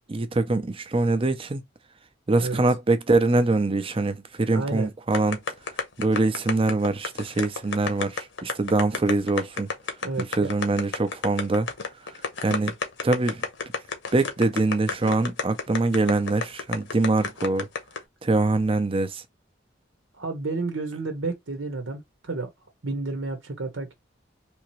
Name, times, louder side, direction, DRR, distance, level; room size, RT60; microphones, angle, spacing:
voice 1, 0.1-1.6 2.3-5.4 6.0-9.7 10.2-11.7 12.4-12.7 13.0-13.4 14.1-17.7 18.2-19.2, right 2 dB, 30° right, 0.6 m, -23 dB
voice 2, 4.5-4.9 10.0-10.5 20.1-22.5 22.8-23.9, right 3 dB, 80° right, 1.0 m, -31 dB
sound 1, 5.1-18.0, left 4 dB, 75° left, 1.0 m, -30 dB
3.5 x 2.9 x 3.0 m
head